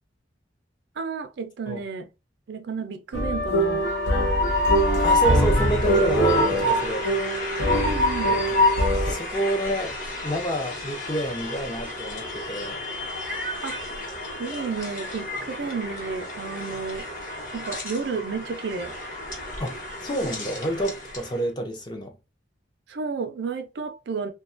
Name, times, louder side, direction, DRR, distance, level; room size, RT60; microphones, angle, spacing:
voice 1, 1.0-2.1 2.5-3.9 7.7-8.3 13.6-13.8 14.4-17.1 17.5-18.9 22.9-24.3, right 5 dB, 65° right, 0.4 m, -32 dB
sound 1, 3.1-9.1, right 1 dB, 90° left, 0.9 m, -23 dB
Train, 3.6-21.4, left 1 dB, 45° left, 0.9 m, -29 dB
voice 2, 5.0-7.1 8.2-8.6 8.9-10.0 10.2-12.8 19.6-22.1, right 1 dB, 25° left, 0.5 m, -29 dB
2.7 x 2.2 x 2.4 m
head